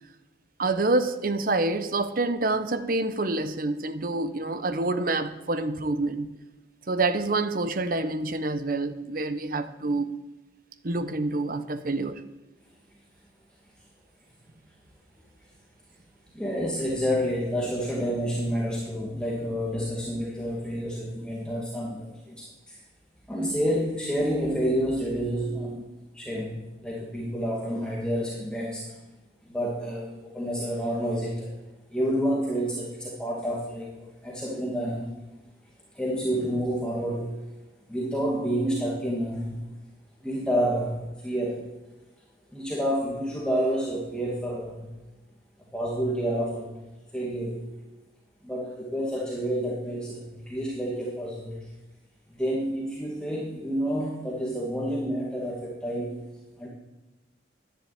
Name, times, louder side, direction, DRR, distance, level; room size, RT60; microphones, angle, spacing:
voice 1, 0.6-6.3 6.9-10.2 10.8-12.2, right 2 dB, 50° right, 0.9 m, -27 dB
voice 2, 16.3-22.8 23.3-29.0 29.4-31.6 31.9-35.2 35.9-37.4 37.9-39.6 40.2-41.7 42.5-45.0 45.7-47.8 48.4-51.7 52.3-56.3 56.6-56.7, equal, 5° left, 2.1 m, -29 dB
10.5 x 10.5 x 8.8 m
head